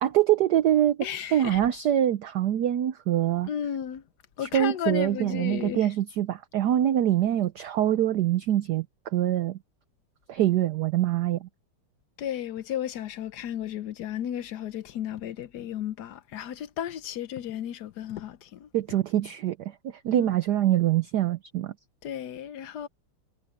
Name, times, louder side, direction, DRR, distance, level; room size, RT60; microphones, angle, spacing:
voice 1, 0.0-3.5 4.4-9.6 10.3-11.5 18.7-21.7, right 12 dB, 65° right, 1.0 m, -24 dB
voice 2, 1.0-1.6 3.5-4.0 4.4-5.9 12.2-18.7 20.1-20.3 22.0-22.9, left 10 dB, 65° left, 1.1 m, -34 dB
omnidirectional pair, 2.4 m